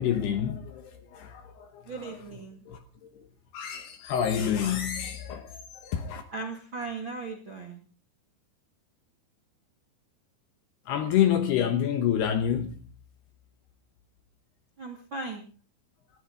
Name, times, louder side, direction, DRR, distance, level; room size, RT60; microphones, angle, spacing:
voice 1, 0.0-1.8 2.7-2.8 3.1-3.2 3.5-6.2 10.9-12.8, left 9 dB, 70° left, 2.7 m, -28 dB
voice 2, 1.8-2.6 6.3-7.8 14.8-15.5, right 3 dB, 50° right, 1.5 m, -37 dB
20.5 x 14.5 x 3.9 m
omnidirectional pair, 5.7 m